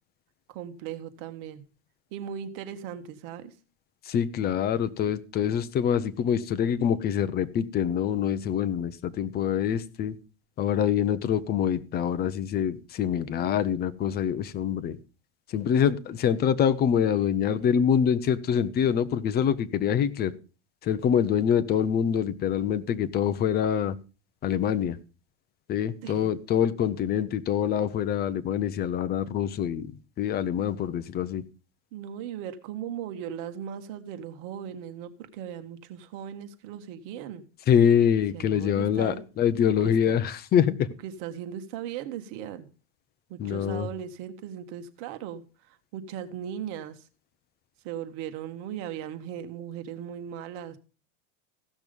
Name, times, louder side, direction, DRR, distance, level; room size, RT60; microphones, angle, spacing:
voice 1, 0.5-1.6 2.1-3.5 26.0-26.3 31.9-37.4 38.3-39.2 39.8-40.2 41.0-42.7 43.3-47.1 47.8-50.8, right 9 dB, 55° right, 1.6 m, -38 dB
voice 2, 4.1-10.2 10.6-15.0 15.5-20.3 20.8-24.0 24.4-25.0 25.7-29.9 30.2-31.4 37.7-40.9 43.4-43.9, left 8 dB, 25° left, 0.8 m, -25 dB
15.5 x 6.2 x 5.3 m
supercardioid pair, 145°, 35 cm